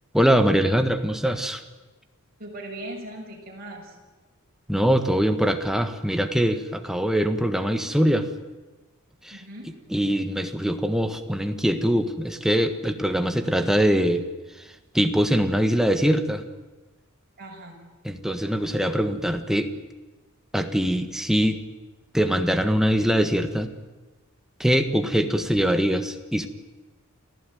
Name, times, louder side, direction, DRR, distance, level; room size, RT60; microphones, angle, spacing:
voice 1, 0.1-1.6 4.7-8.3 9.2-9.4 9.9-14.2 14.9-16.4 18.0-19.7 20.5-21.6 22.1-23.7 24.6-26.5, equal, ahead, 7 dB, 1.5 m, -22 dB
voice 2, 2.4-4.0 9.3-9.7 17.4-17.9, right 1 dB, 45° right, 0 dB, 6.3 m, -39 dB
28.0 x 15.5 x 9.3 m, 1.2 s
head